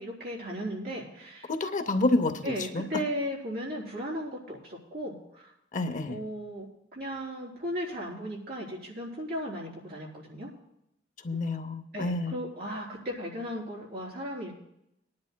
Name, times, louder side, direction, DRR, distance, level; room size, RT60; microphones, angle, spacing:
voice 1, 0.0-1.5 2.4-5.5 6.1-10.5 11.9-14.6, equal, 55° right, -3 dB, 3.6 m, -36 dB
voice 2, 1.5-3.0 5.7-6.2 11.2-12.4, left 2 dB, 40° left, 8 dB, 0.7 m, -29 dB
21.5 x 10.5 x 2.2 m, 0.81 s
head